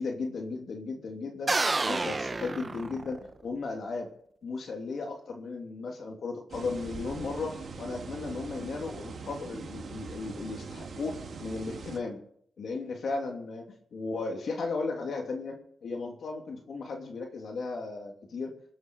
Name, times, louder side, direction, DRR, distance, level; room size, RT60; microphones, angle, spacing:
voice 1, 0.0-1.5 1.8-4.1 4.4-12.2 12.6-13.6 13.9-18.5, left 3 dB, 70° left, 2 dB, 2.8 m, -35 dB
sound 1, 1.5-3.4, right 3 dB, 30° right, 0.9 m, -29 dB
sound 2, 6.5-12.0, right 4 dB, 65° right, 1.9 m, -42 dB
22.5 x 8.0 x 5.2 m, 0.64 s
wide cardioid pair, 100°, 0 cm